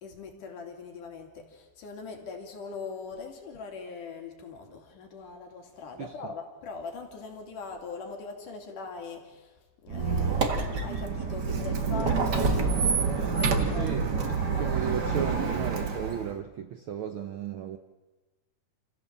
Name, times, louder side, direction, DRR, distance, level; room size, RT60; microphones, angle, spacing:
voice 1, 0.0-14.0 14.4-15.0, left 4 dB, 80° left, 3 dB, 4.2 m, -41 dB
voice 2, 6.0-6.3 13.8-14.2 14.5-17.8, right 8 dB, 90° right, 8 dB, 1.1 m, -35 dB
Squeak, 9.9-16.3, right 5 dB, 40° right, 1.8 m, -27 dB
29.0 x 15.5 x 7.4 m, 1.2 s
omnidirectional pair, 3.6 m